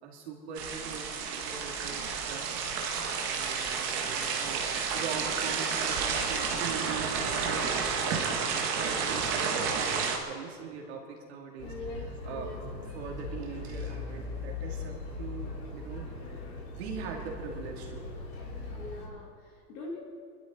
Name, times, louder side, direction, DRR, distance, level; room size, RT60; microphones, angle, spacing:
voice 1, 0.0-2.9 3.2-4.7 4.9-11.7 12.2-12.5 12.9-16.4 16.7-18.1, right 5 dB, 40° right, 1 dB, 2.5 m, -42 dB
sound 1, 0.6-10.2, right 6 dB, 15° right, 0.8 m, -31 dB
sound 2, 11.6-19.1, left 3 dB, 35° left, 3.6 m, -40 dB
voice 2, 11.6-12.6 18.7-20.0, left 2 dB, 20° left, -1 dB, 1.0 m, -43 dB
23.5 x 12.5 x 4.4 m, 2.2 s
hypercardioid pair, 170°, 49 cm